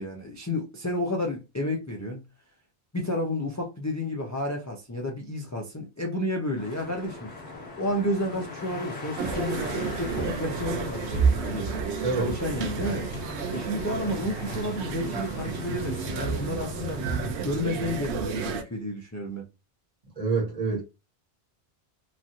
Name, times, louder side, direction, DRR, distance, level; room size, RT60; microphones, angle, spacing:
voice 1, 0.0-2.2 2.9-7.3 7.8-11.7 12.2-13.1 13.5-17.0 17.4-19.5, left 1 dB, 25° left, 0.4 m, -31 dB
sound 1, 6.5-17.3, left 3 dB, 50° left, 1.2 m, -40 dB
sound 2, 9.2-18.6, right 5 dB, 85° right, 0.9 m, -31 dB
voice 2, 12.0-12.3 20.2-20.8, right 4 dB, 35° right, 1.2 m, -26 dB
3.0 x 2.4 x 2.6 m
omnidirectional pair, 1.1 m